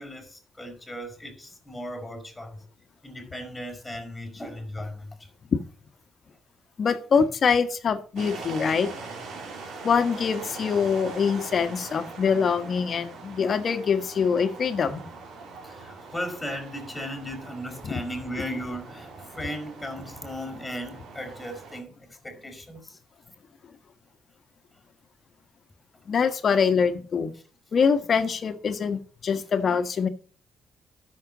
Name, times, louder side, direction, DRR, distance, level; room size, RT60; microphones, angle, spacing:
voice 1, 0.0-2.6 3.0-5.2 15.6-23.0, equal, 10° left, 4.9 m, -36 dB
voice 2, 6.8-8.9 9.8-15.1 17.8-18.0 26.1-27.3 27.7-30.1, left 6 dB, 50° left, 1.4 m, -24 dB
sound 1, 8.2-21.8, right 4 dB, 70° right, 3.1 m, -42 dB
13.0 x 6.7 x 4.0 m
cardioid pair, 90°, 0 cm